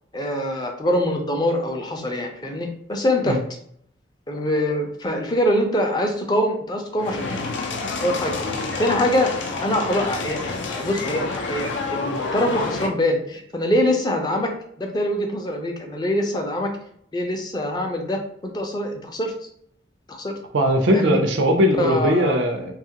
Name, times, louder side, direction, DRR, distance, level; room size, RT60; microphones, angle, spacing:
voice 1, 0.1-3.4 4.3-7.4 8.0-8.5 8.8-9.4 9.6-16.7 17.1-19.3 20.1-20.3 20.9-21.2 21.7-22.4, left 1 dB, 25° left, 3 dB, 0.4 m, -24 dB
sound 1, 7.0-12.9, left 3 dB, 85° left, 0.4 m, -28 dB
voice 2, 20.5-22.7, equal, 85° right, 3 dB, 0.5 m, -19 dB
2.8 x 2.3 x 2.8 m, 0.67 s
head